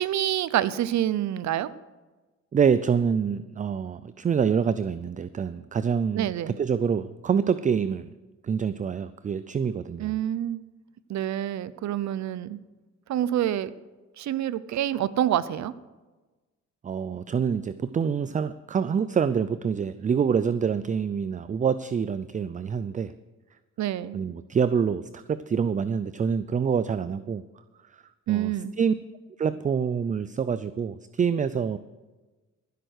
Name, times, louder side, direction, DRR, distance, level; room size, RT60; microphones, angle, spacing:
voice 1, 0.0-1.7 6.1-6.6 10.0-10.6 11.1-12.6 13.1-13.7 14.2-15.7 23.8-24.2 28.3-28.7, right 12 dB, 65° right, 17 dB, 0.7 m, -27 dB
voice 2, 2.5-6.3 6.6-8.1 8.4-10.1 16.8-23.1 24.1-27.4 28.3-28.5 28.8-28.9 29.4-31.8, right 6 dB, 25° right, 14 dB, 0.4 m, -26 dB
15.0 x 7.9 x 6.4 m, 1.2 s
cardioid pair, 90°, 30 cm